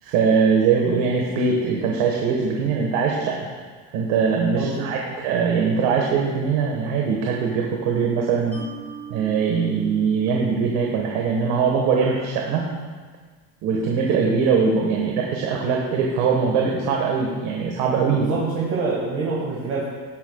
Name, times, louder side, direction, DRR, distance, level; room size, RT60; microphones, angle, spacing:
voice 1, 0.0-3.4 3.9-8.6 9.1-12.7 13.6-18.3, right 5 dB, 70° right, -1 dB, 1.6 m, -21 dB
voice 2, 4.5-5.2 18.1-19.9, right 3 dB, 40° right, -5 dB, 1.9 m, -26 dB
Mallet percussion, 8.5-11.8, right 5 dB, 5° left, 2.5 m, -42 dB
17.5 x 8.8 x 2.4 m, 1.5 s
cardioid pair, 170°, 38 cm